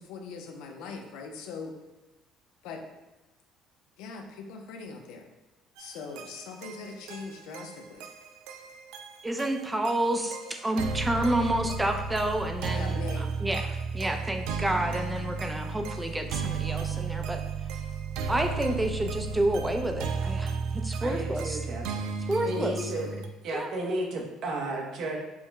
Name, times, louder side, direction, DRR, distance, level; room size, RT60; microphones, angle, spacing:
voice 1, 0.0-1.8 2.6-2.9 4.0-5.3 5.8-8.1 12.7-13.3, left 4 dB, 85° left, 4 dB, 0.5 m, -41 dB
sound 1, 5.8-23.3, right 4 dB, 85° right, 0.3 m, -34 dB
voice 2, 9.2-17.4 18.3-21.6 22.3-22.7 23.5-23.7, right 1 dB, 10° right, 4 dB, 0.4 m, -29 dB
voice 3, 21.0-21.9 22.2-23.1 23.4-25.2, right 1 dB, 55° right, 0 dB, 0.7 m, -33 dB
4.6 x 2.1 x 3.4 m, 1.1 s
cardioid pair, 135°, 0 cm